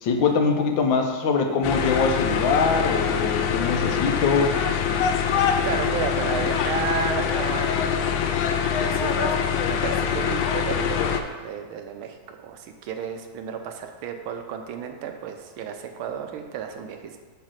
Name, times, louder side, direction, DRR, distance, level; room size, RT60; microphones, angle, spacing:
voice 1, 0.0-4.5, left 4 dB, 75° left, 4 dB, 1.5 m, -23 dB
sound 1, 1.6-11.2, left 7 dB, 90° left, 1.4 m, -24 dB
voice 2, 5.6-8.0 8.8-9.3 9.6-17.2, right 7 dB, 85° right, 5 dB, 1.5 m, -32 dB
8.3 x 3.2 x 6.3 m, 1.3 s
omnidirectional pair, 2.2 m